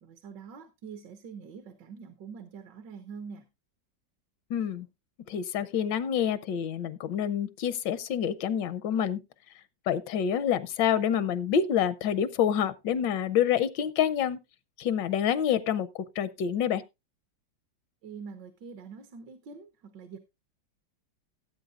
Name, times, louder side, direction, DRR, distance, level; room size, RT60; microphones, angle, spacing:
voice 1, 0.0-3.5 18.0-20.2, right 5 dB, 75° right, 1.8 m, -45 dB
voice 2, 4.5-4.9 5.3-9.2 9.9-14.4 14.8-16.8, left 8 dB, 80° left, 1.4 m, -27 dB
17.0 x 8.5 x 2.4 m
omnidirectional pair, 1.9 m